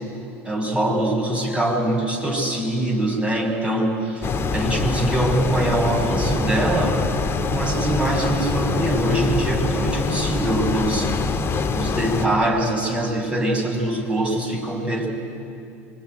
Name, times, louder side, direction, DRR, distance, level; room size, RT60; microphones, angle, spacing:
voice 1, 0.4-7.0 7.5-11.1 11.7-15.1, right 1 dB, 15° right, 0 dB, 6.7 m, -23 dB
sound 1, 4.2-12.3, left 4 dB, 30° left, 1.8 m, -24 dB
25.0 x 22.0 x 9.6 m, 2.6 s
hypercardioid pair, 80°, 8 cm